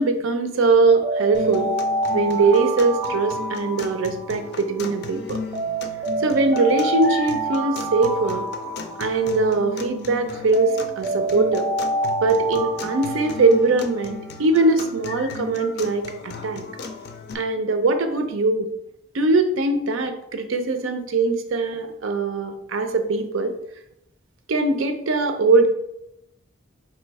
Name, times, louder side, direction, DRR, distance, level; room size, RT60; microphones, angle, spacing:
voice 1, 0.0-1.7 2.1-5.4 6.2-8.5 9.0-11.7 12.2-16.6 17.3-18.7 19.1-23.5 24.5-25.7, right 3 dB, 75° right, 7 dB, 0.5 m, -21 dB
Alarm, 0.8-5.0 5.5-10.0 10.5-14.3, right 2 dB, 25° right, 0.5 m, -27 dB
sound 1, 1.3-17.3, left 4 dB, 55° left, 0.4 m, -36 dB
3.2 x 3.0 x 4.6 m, 0.83 s
head